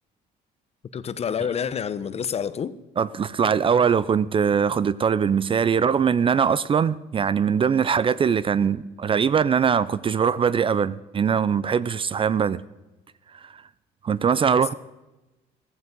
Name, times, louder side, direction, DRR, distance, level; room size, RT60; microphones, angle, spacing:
voice 1, 0.9-2.7 14.5-14.7, left 7 dB, 40° left, 0.8 m, -28 dB
voice 2, 3.0-12.6 13.3-13.6 14.0-14.7, right 7 dB, 30° right, 0.5 m, -22 dB
14.5 x 14.0 x 5.3 m
cardioid pair, 110°, 17 cm